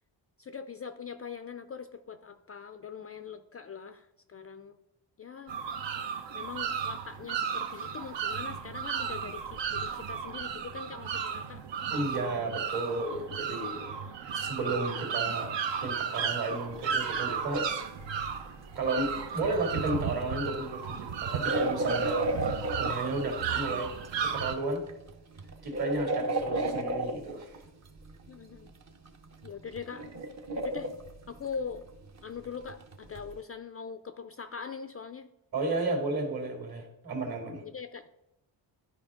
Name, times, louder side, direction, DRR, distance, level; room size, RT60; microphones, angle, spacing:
voice 1, 0.4-4.8 5.2-5.6 6.3-11.6 28.3-28.7 29.4-30.1 30.6-30.9 31.3-31.9 32.2-35.3 37.6-38.1, left 6 dB, 35° left, 10 dB, 0.4 m, -42 dB
sound 1, 5.5-24.5, right 7 dB, 65° right, 0.9 m, -34 dB
voice 2, 11.9-13.9 14.2-15.5 15.8-17.7 18.1-18.2 18.7-22.2 22.8-23.9 24.2-24.8 25.6-27.6 35.5-37.6, right 2 dB, 50° right, 3 dB, 2.2 m, -33 dB
sound 2, 16.7-16.8 17.1-24.3 24.7-28.3 28.8-33.4, right 1 dB, 35° right, 0.8 m, -34 dB
11.5 x 4.8 x 3.6 m, 0.87 s
cardioid pair, 105°, 46 cm